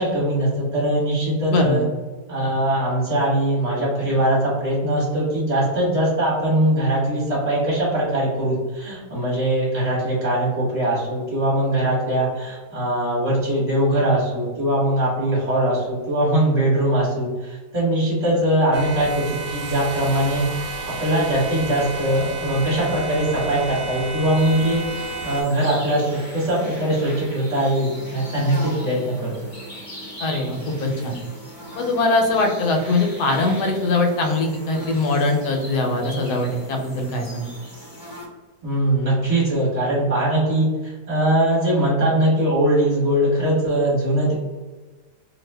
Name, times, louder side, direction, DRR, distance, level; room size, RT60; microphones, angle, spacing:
voice 1, 0.0-1.8 2.3-20.5 21.0-24.8 25.2-29.5 38.6-44.3, right 1 dB, 25° right, -7 dB, 1.0 m, -21 dB
voice 2, 1.5-1.9 30.2-31.2 31.8-37.5, left 2 dB, 75° left, 2 dB, 1.1 m, -22 dB
sound 1, 18.7-25.4, right 3 dB, 80° right, 1.2 m, -32 dB
sound 2, 24.3-38.3, equal, 25° left, 0.5 m, -39 dB
2.7 x 2.4 x 3.2 m, 1.3 s
omnidirectional pair, 1.9 m